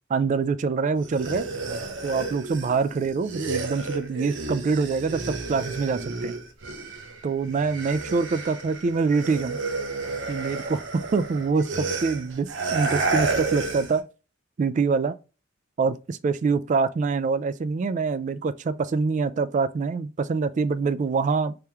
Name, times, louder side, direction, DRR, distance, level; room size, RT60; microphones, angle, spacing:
voice 1, 0.1-1.5 2.0-6.3 7.2-9.6 10.3-14.1 14.6-15.2 15.8-21.5, right 4 dB, 40° right, 0.3 m, -25 dB
sound 1, 1.0-7.2 7.5-14.0, right 3 dB, 70° right, 0.8 m, -31 dB
3.4 x 2.9 x 3.4 m
head